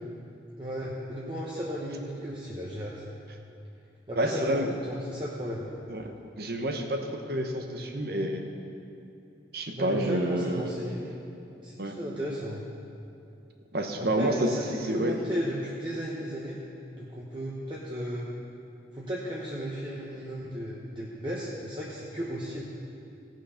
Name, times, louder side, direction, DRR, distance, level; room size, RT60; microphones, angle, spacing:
voice 1, 0.6-3.0 4.1-5.7 9.7-11.0 11.6-12.6 14.0-16.6 16.9-18.3 18.9-22.6, equal, 25° right, -5 dB, 1.0 m, -35 dB
voice 2, 4.2-4.7 5.9-8.4 9.5-10.8 11.8-11.9 13.7-14.5 14.8-15.1, right 1 dB, 55° right, 4 dB, 0.9 m, -29 dB
16.5 x 6.2 x 5.7 m, 2.7 s
head